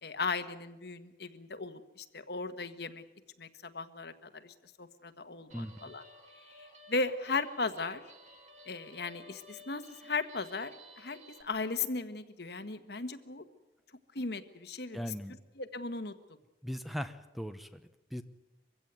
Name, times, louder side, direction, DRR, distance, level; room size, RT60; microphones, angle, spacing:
voice 1, 0.0-3.0 3.4-6.0 6.5-8.0 8.7-13.4 14.1-15.1 15.6-16.1, left 3 dB, 65° left, 9 dB, 1.4 m, -37 dB
Guitar, 5.5-11.4, left 1 dB, 40° right, 2.9 m, -55 dB
voice 2, 14.9-15.4 16.6-18.2, equal, ahead, 10 dB, 0.9 m, -39 dB
23.5 x 16.0 x 9.3 m, 0.99 s
head